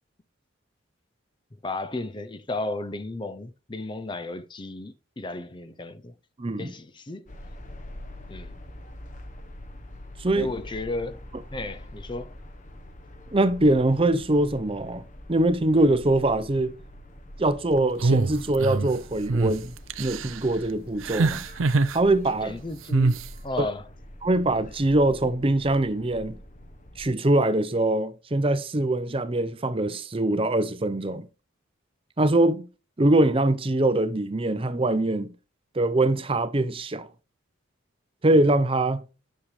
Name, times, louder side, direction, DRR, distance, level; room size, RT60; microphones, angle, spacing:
voice 1, 1.6-6.1 6.6-7.3 8.3-8.5 10.4-11.2 11.5-12.4 22.4-23.9, left 2 dB, 25° left, 0.5 m, -34 dB
voice 2, 6.4-6.7 10.2-10.5 13.3-15.0 15.3-16.7 17.4-19.7 20.0-21.4 21.9-22.5 23.6-23.7 24.2-26.4 27.0-31.3 32.2-32.7 33.0-35.3 35.7-37.1 38.2-39.0, right 1 dB, 25° right, 0.6 m, -23 dB
sound 1, 7.3-27.1, left 1 dB, 40° left, 1.0 m, -44 dB
sound 2, 18.0-18.9 19.3-19.5 19.9-20.4 21.0-22.0 22.9-23.3, right 3 dB, 75° right, 0.6 m, -23 dB
10.0 x 6.6 x 3.2 m
head